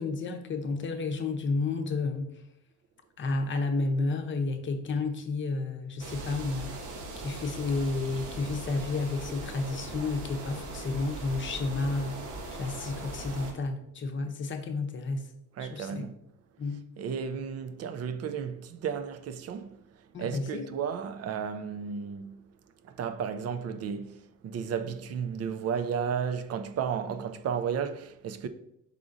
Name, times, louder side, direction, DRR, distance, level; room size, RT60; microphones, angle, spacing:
voice 1, 0.0-2.3 3.2-6.9 7.2-12.2 12.5-15.2 15.6-16.1 16.6-16.8 20.1-20.7, left 3 dB, 40° left, 0.7 m, -31 dB
sound 1, 6.0-13.5, right 2 dB, 80° right, 0.8 m, -40 dB
voice 2, 15.6-16.1 17.0-19.8 20.2-22.4 22.8-28.5, right 7 dB, 55° right, 0.4 m, -33 dB
4.9 x 3.7 x 2.6 m
cardioid pair, 90°, 30 cm